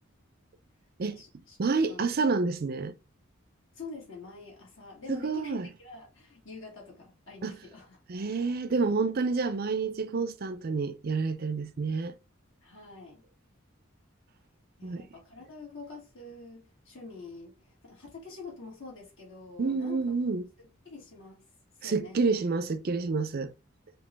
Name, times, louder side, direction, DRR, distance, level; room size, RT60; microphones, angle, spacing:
voice 1, 1.1-2.0 3.7-8.0 12.6-13.2 14.8-20.1 20.6-21.5 21.8-22.2, left 3 dB, 65° left, 2.4 m, -46 dB
voice 2, 1.6-2.9 5.1-5.7 7.4-7.6 8.1-12.1 14.8-15.1 19.6-20.4 21.8-23.5, right 4 dB, 45° right, 0.4 m, -29 dB
5.1 x 2.9 x 3.3 m
head